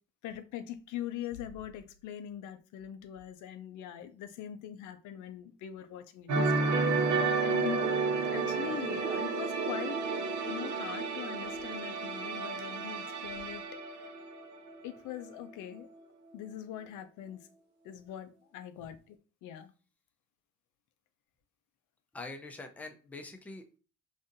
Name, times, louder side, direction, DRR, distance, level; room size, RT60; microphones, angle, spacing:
voice 1, 0.2-8.0 8.3-10.0 10.5-14.1 14.8-15.9 16.3-17.5 17.8-19.2 19.4-19.7, left 10 dB, 85° left, 0.6 m, -42 dB
sound 1, 6.3-15.0 15.2-15.5, right 4 dB, 80° right, 0.7 m, -31 dB
voice 2, 22.1-23.8, left 3 dB, 5° left, 0.4 m, -44 dB
3.9 x 2.6 x 2.5 m
cardioid pair, 130°, 29 cm